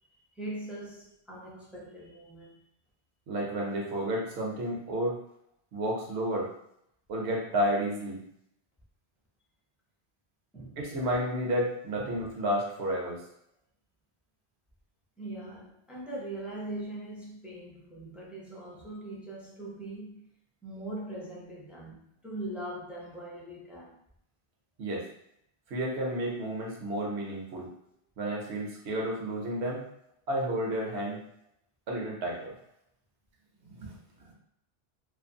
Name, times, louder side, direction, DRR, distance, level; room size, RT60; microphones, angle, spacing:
voice 1, 0.3-2.6 10.5-10.8 12.0-12.1 15.2-20.3 20.6-24.0, right 1 dB, ahead, 0.4 m, -41 dB
voice 2, 3.3-5.2 5.7-6.5 7.1-8.2 10.8-13.2 24.8-25.0 25.7-27.7 28.2-29.8 30.3-31.2 31.9-32.5 33.6-33.9, right 1 dB, 85° right, 1.0 m, -31 dB
2.6 x 2.5 x 2.6 m
omnidirectional pair, 1.1 m